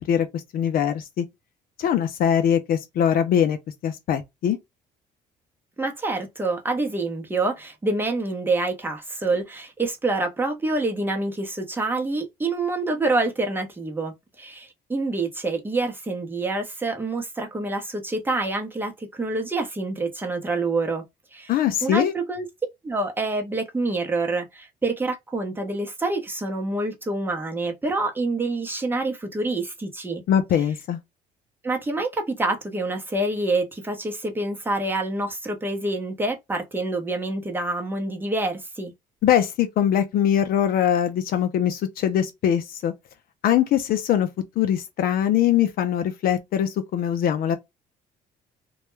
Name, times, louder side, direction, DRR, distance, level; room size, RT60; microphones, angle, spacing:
voice 1, 0.1-1.2 1.8-3.6 3.8-4.6 21.5-22.1 30.3-31.0 39.2-42.9 43.4-44.3 44.6-47.6, left 9 dB, 60° left, 0.5 m, -22 dB
voice 2, 5.8-21.0 21.3-21.5 21.8-22.5 22.8-30.2 31.6-38.9, right 2 dB, 10° right, 0.7 m, -27 dB
2.2 x 2.1 x 3.0 m
cardioid pair, 110°, 17 cm